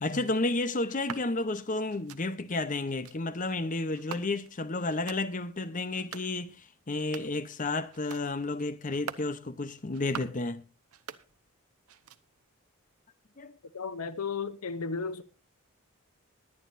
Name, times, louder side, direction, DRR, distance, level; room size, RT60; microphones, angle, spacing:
voice 1, 0.0-10.6 13.4-13.6, left 2 dB, 35° left, 0.8 m, -32 dB
sound 1, 0.9-1.3 1.9-2.2 2.9-3.2 3.9-4.6 4.9-5.2 5.9-6.3 6.9-7.4 7.9-8.3 8.9-9.3 9.9-10.4 10.9-11.6 11.9-12.4, right 6 dB, 80° right, 0.8 m, -44 dB
voice 2, 13.7-15.2, left 5 dB, 80° left, 0.8 m, -34 dB
21.0 x 8.8 x 2.6 m
head